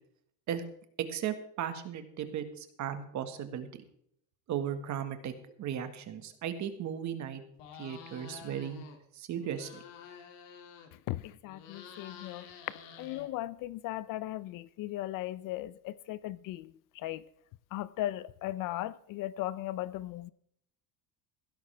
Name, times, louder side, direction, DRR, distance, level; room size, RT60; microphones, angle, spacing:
voice 1, 1.0-3.8 4.5-5.3 5.6-7.4 7.8-8.8 9.1-9.8, right 9 dB, 45° right, 1.6 m, -36 dB
sound 1, 7.6-9.0 9.3-11.1 11.4-13.7, left 7 dB, 80° left, 2.6 m, -50 dB
voice 2, 11.1-12.5 13.0-17.2 17.7-20.3, left 15 dB, 50° left, 0.6 m, -37 dB
16.0 x 13.0 x 3.4 m
cardioid pair, 160°, 41 cm